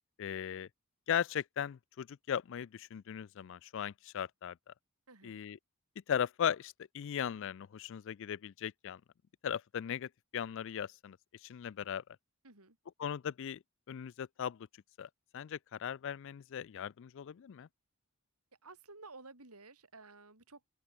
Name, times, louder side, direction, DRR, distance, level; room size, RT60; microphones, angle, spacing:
voice 1, 0.2-0.7 1.1-4.6 5.2-5.6 6.1-9.0 9.4-12.0 13.0-14.7 15.0-17.7, left 8 dB, 60° left, 0.3 m, -38 dB
voice 2, 5.1-5.4 12.4-12.8 18.6-20.7, right 3 dB, 90° right, 4.5 m, -54 dB
open air
head